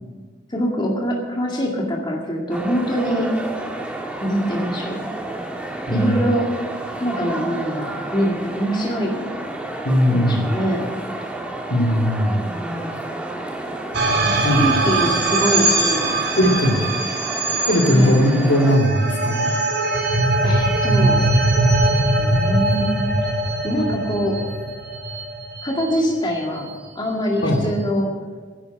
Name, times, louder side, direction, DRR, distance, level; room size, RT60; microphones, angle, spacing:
voice 1, 0.5-3.3 4.2-5.1 5.9-6.5 6.9-9.3 10.1-10.9 12.4-13.1 14.2-16.1 17.9-18.2 20.4-21.3 22.2-23.0 23.6-24.4 25.6-26.7 27.0-28.1, equal, 25° left, -1 dB, 2.1 m, -24 dB
sound 1, 2.5-18.8, right 2 dB, 5° right, 1.8 m, -31 dB
voice 2, 5.9-6.2 9.8-10.4 11.7-12.4 14.4-14.7 16.4-16.8 17.7-19.5 27.4-27.6, equal, 70° left, 0 dB, 2.7 m, -18 dB
sound 2, 13.9-26.4, right 2 dB, 60° right, 2.5 m, -21 dB
11.0 x 8.8 x 9.8 m, 1.4 s
head